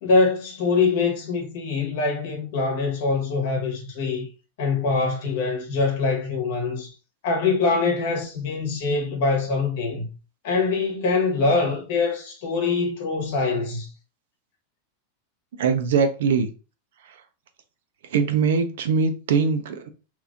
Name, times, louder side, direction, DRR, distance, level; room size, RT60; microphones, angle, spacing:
voice 1, 0.0-4.3 4.6-6.9 7.2-10.1 10.4-13.9, left 4 dB, 55° left, 1.1 m, -24 dB
voice 2, 15.6-16.5 18.1-19.9, right 5 dB, 75° right, 0.6 m, -22 dB
3.0 x 2.6 x 3.4 m
supercardioid pair, 170°, 0 cm